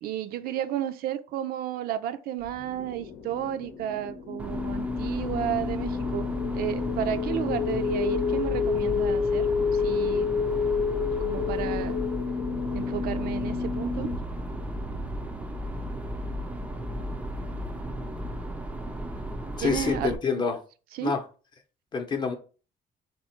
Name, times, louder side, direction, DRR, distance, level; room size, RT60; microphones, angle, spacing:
voice 1, 0.0-9.5 9.7-10.3 11.2-12.0 12.7-14.1 19.6-20.4 20.9-21.1, right 11 dB, 75° right, 0.4 m, -32 dB
sound 1, 2.5-14.2, left 6 dB, 85° left, 0.8 m, -29 dB
sound 2, 4.4-20.2, equal, 10° right, 0.4 m, -35 dB
voice 2, 19.6-20.6 21.0-21.2 21.9-22.3, left 5 dB, 30° left, 0.6 m, -27 dB
3.8 x 3.0 x 4.3 m
cardioid pair, 175°, 16 cm